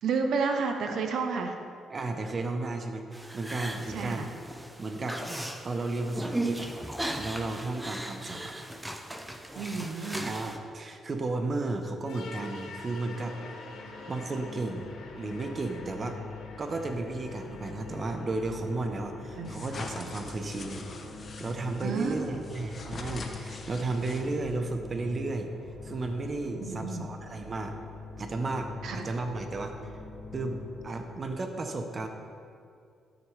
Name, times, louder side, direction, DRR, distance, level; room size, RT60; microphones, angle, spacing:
voice 1, 0.0-1.6 3.9-4.3 9.5-10.3 19.4-19.5 21.8-22.4 26.6-27.1 28.8-29.1, right 4 dB, 70° right, 4 dB, 0.7 m, -31 dB
voice 2, 1.9-4.3 4.8-5.2 5.6-6.7 7.2-8.5 10.2-13.4 14.1-16.2 16.6-20.8 21.4-25.5 25.8-27.8 28.2-29.9 30.3-32.1, right 2 dB, 35° right, 5 dB, 0.8 m, -33 dB
sound 1, 3.1-10.6, right 1 dB, 10° right, 0.7 m, -37 dB
sound 2, 12.0-31.0, left 3 dB, 85° left, 1.6 m, -44 dB
sound 3, 19.4-24.6, left 3 dB, 45° left, 0.9 m, -44 dB
13.0 x 6.2 x 3.3 m, 2.3 s
cardioid pair, 90°, 0 cm